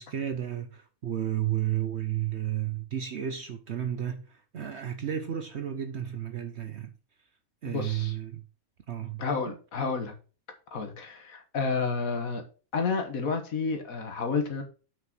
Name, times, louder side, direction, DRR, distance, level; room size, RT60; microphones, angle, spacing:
voice 1, 0.0-6.9 7.6-8.4 8.9-9.6, right 11 dB, 55° right, 0.9 m, -32 dB
voice 2, 7.7-8.1 9.2-10.1 10.7-12.4 12.7-14.6, left 4 dB, 70° left, 1.8 m, -30 dB
6.2 x 5.3 x 6.0 m
omnidirectional pair, 1.5 m